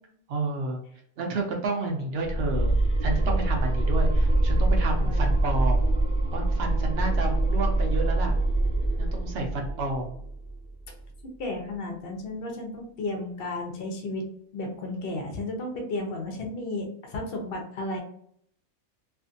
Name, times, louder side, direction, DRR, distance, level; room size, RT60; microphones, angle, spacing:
voice 1, 0.3-0.8 1.2-2.7 3.0-5.9 6.3-8.4 9.0-10.2, right 3 dB, 70° right, 1 dB, 0.5 m, -31 dB
sound 1, 2.2-11.1, right 2 dB, 5° right, 0.6 m, -24 dB
voice 2, 5.0-5.3 11.4-14.3 14.5-18.0, left 2 dB, 60° left, 2 dB, 0.6 m, -33 dB
2.5 x 2.5 x 2.5 m, 0.64 s
omnidirectional pair, 1.7 m